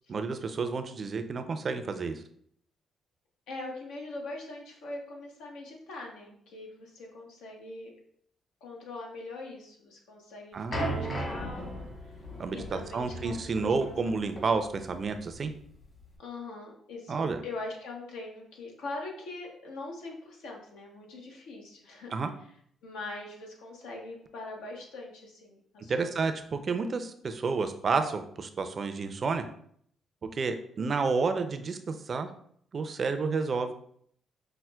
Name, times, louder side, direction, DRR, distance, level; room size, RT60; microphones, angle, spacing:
voice 1, 0.1-2.2 10.5-11.2 12.4-15.5 17.1-17.4 22.1-22.3 25.9-29.4 30.3-32.3 32.7-33.7, right 4 dB, 50° right, 8 dB, 0.4 m, -30 dB
voice 2, 3.5-7.9 8.6-12.2 12.5-14.3 16.2-22.1 22.8-26.3 30.8-31.1, left 2 dB, 90° left, 0 dB, 0.8 m, -42 dB
sound 1, 10.7-16.1, equal, 40° left, 1.3 m, -37 dB
5.5 x 2.1 x 2.2 m, 0.65 s
supercardioid pair, 65°, 0 cm